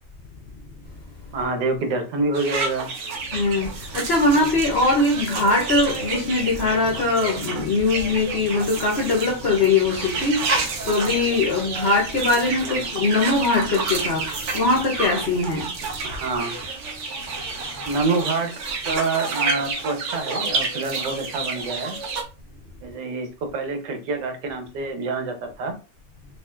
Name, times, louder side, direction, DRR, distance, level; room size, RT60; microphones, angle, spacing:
voice 1, 1.3-2.9 12.6-12.9 16.0-16.6 17.9-18.6 18.8-22.0 22.8-25.7, right 3 dB, 90° right, 1.5 m, -27 dB
sound 1, 2.3-22.2, right 4 dB, 55° right, 0.9 m, -29 dB
voice 2, 3.3-3.7 3.9-10.5 10.8-14.2 14.5-15.7, left 3 dB, 55° left, 0.7 m, -21 dB
5.2 x 2.5 x 2.4 m
omnidirectional pair, 1.8 m